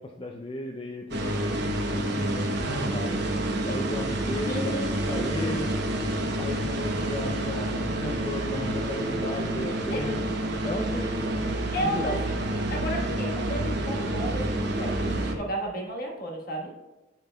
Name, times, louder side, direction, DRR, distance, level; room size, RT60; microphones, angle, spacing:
voice 1, 0.0-4.8 5.1-5.7 6.4-10.3 10.6-12.2, left 2 dB, 30° left, 0 dB, 0.4 m, -35 dB
sound 1, 1.1-15.4, right 1 dB, 65° right, 0.8 m, -28 dB
voice 2, 4.5-5.6 9.9-10.2 11.7-12.3 12.7-16.7, equal, 55° left, -1 dB, 1.4 m, -33 dB
9.9 x 5.2 x 2.2 m, 1.1 s
head